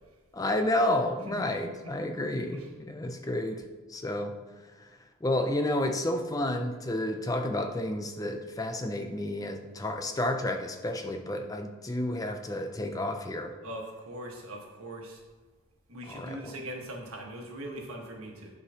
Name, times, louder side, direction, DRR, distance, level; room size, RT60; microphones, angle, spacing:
voice 1, 0.3-3.6 3.9-4.4 4.8-13.6 16.0-16.6, left 1 dB, 15° left, 5 dB, 0.4 m, -31 dB
voice 2, 13.6-15.2 15.9-18.5, right 1 dB, 85° right, 0 dB, 1.4 m, -41 dB
10.5 x 4.9 x 2.8 m, 1.3 s
head